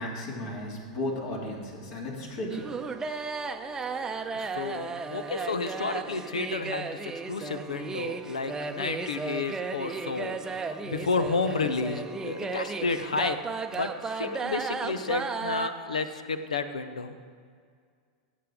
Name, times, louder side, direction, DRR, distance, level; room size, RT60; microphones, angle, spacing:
voice 1, 0.0-2.7, left 1 dB, 50° left, -2 dB, 3.3 m, -34 dB
sound 1, 2.5-15.7, right 4 dB, 15° right, 0.7 m, -34 dB
voice 2, 4.3-13.4 13.7-17.2, left 4 dB, 80° left, 10 dB, 0.8 m, -31 dB
18.0 x 8.4 x 3.7 m, 2.1 s
hypercardioid pair, 95°, 4 cm